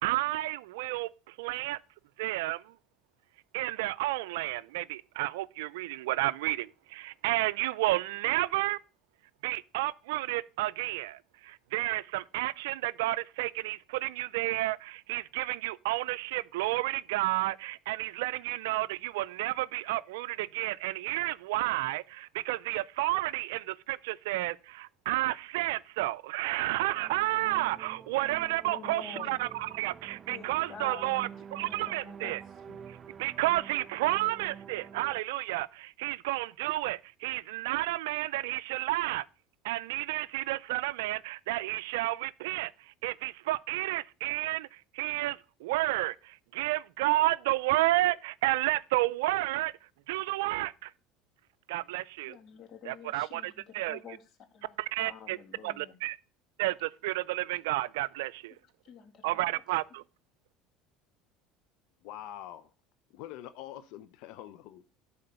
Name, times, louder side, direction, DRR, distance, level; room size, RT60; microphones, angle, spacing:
voice 1, 0.0-1.8 2.2-2.7 3.5-8.8 9.4-32.4 33.2-39.2 39.6-42.7 43.0-49.7 50.1-50.9 51.7-52.4 52.9-54.0 54.8-55.4 55.6-56.2 56.6-58.5 59.2-60.0, right 18 dB, 80° right, 0.4 m, -31 dB
sound 1, 26.8-35.2, right 7 dB, 35° right, 0.5 m, -48 dB
voice 2, 28.6-29.4 30.3-31.2 31.5-32.9 52.2-54.2 54.5-56.0 58.8-59.3, left 6 dB, 50° left, 2.0 m, -48 dB
voice 3, 62.0-62.7 63.1-64.9, left 12 dB, 70° left, 0.6 m, -45 dB
11.5 x 4.3 x 6.8 m
supercardioid pair, 95°, 0 cm